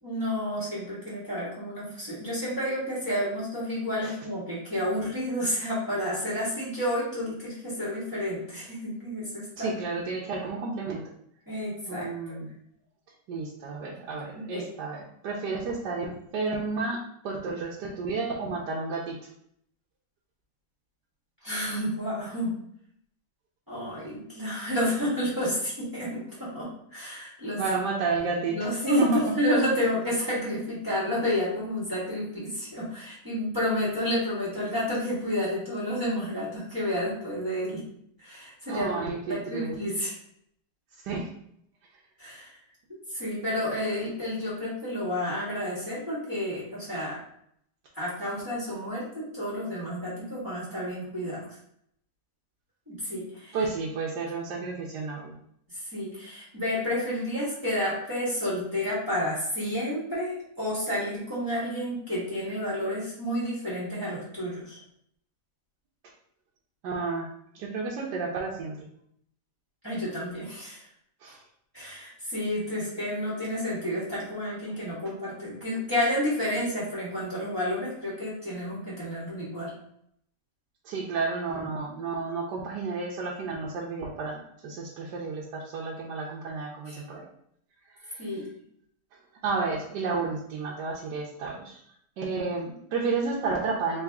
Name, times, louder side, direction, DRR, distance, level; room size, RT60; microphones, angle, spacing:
voice 1, 0.0-9.7 11.5-12.3 14.3-14.6 21.4-22.5 23.7-27.6 28.5-37.8 38.2-40.1 42.2-42.5 43.1-47.2 47.9-51.5 52.9-53.6 55.7-64.8 69.8-70.8 71.7-79.7 86.9-87.0 88.2-88.5, left 1 dB, 10° right, -9 dB, 1.6 m, -30 dB
voice 2, 9.6-11.0 11.9-12.5 13.3-19.2 27.5-28.6 28.8-29.2 38.7-39.8 41.0-41.3 53.5-55.4 66.8-67.3 67.5-68.9 71.2-71.4 80.8-87.2 88.0-88.3 89.4-91.8 92.2-94.0, right 4 dB, 80° right, -3 dB, 1.3 m, -31 dB
3.8 x 3.1 x 3.5 m, 0.69 s
omnidirectional pair, 1.8 m